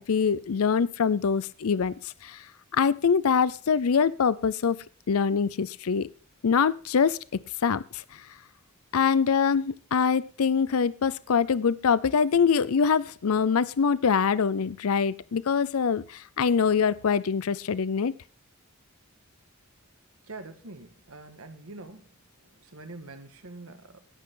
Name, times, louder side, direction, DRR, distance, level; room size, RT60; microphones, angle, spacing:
voice 1, 0.0-1.9 2.2-2.4 2.7-4.8 5.1-6.1 6.4-7.2 7.6-8.0 8.9-18.1, left 6 dB, 70° left, 18 dB, 0.5 m, -24 dB
voice 2, 20.3-22.1 22.4-24.1, right 2 dB, 75° right, 8 dB, 1.7 m, -45 dB
18.0 x 8.5 x 3.8 m, 0.38 s
head